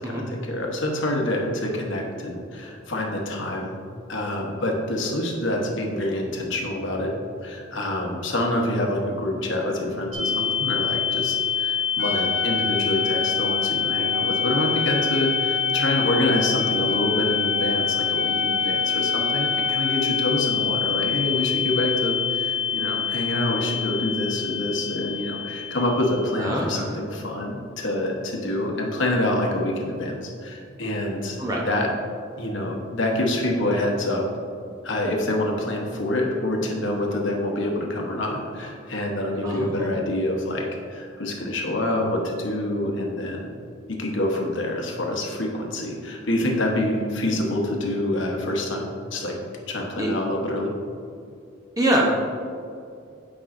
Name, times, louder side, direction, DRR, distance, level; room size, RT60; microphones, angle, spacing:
voice 1, 0.0-3.7 4.1-7.1 7.4-31.4 31.7-31.9 32.4-34.3 34.8-43.5 43.9-49.4 49.7-50.7, left 1 dB, 65° left, 0 dB, 1.0 m, -26 dB
sound 1, 10.1-26.5, left 8 dB, ahead, 1.2 m, -26 dB
Trumpet, 12.0-20.4, right 1 dB, 55° right, 0.9 m, -32 dB
voice 2, 26.4-27.0 31.4-31.6 39.4-39.9 50.0-50.1 51.8-52.1, right 1 dB, 15° right, -2 dB, 0.7 m, -24 dB
8.6 x 5.3 x 2.5 m, 2.4 s
head